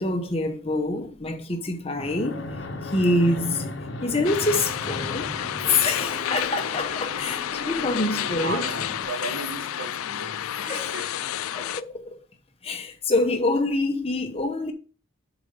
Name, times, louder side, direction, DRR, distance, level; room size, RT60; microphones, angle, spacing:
voice 1, 0.0-2.5 2.8-3.7 4.0-5.3 5.7-8.6 10.7-10.9 11.5-12.2 12.6-14.7, left 2 dB, 30° left, 0.8 m, -26 dB
Fixed-wing aircraft airplane, 2.0-9.0, left 2 dB, 60° left, 1.0 m, -35 dB
sound 1, 4.2-11.8, left 11 dB, 90° left, 0.4 m, -30 dB
voice 2, 8.2-11.2, right 3 dB, 70° right, 1.3 m, -35 dB
7.1 x 4.0 x 5.3 m
head